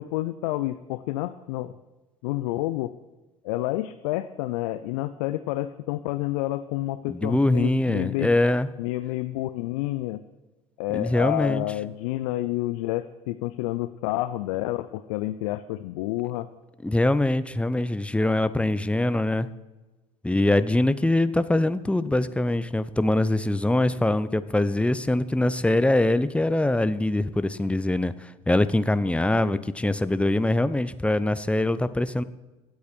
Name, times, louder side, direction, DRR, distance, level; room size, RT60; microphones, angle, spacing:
voice 1, 0.0-1.7 2.2-2.9 3.4-8.4 8.8-10.2 10.8-16.5 29.4-29.6, left 16 dB, 65° left, 12 dB, 0.6 m, -29 dB
voice 2, 7.1-8.7 10.9-11.6 16.8-19.5 20.2-32.2, left 1 dB, 5° left, 13 dB, 0.8 m, -23 dB
24.0 x 8.3 x 4.5 m, 1.2 s
figure-of-eight pair, 60°, 19 cm